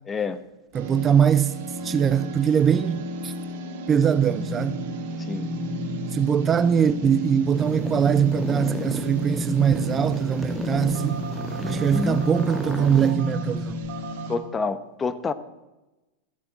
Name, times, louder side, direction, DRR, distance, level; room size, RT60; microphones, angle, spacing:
voice 1, 0.1-0.4 5.3-5.5 11.6-12.2 14.3-15.3, left 4 dB, 20° left, 1.0 m, -28 dB
voice 2, 0.7-1.6 1.8-3.3 3.9-4.8 6.1-11.2 11.7-13.8, right 8 dB, 25° right, 0.5 m, -22 dB
sound 1, 0.7-14.4, equal, 60° right, 3.4 m, -31 dB
sound 2, 7.5-13.1, left 1 dB, ahead, 1.5 m, -35 dB
14.0 x 7.3 x 8.7 m
hypercardioid pair, 95°, 0 cm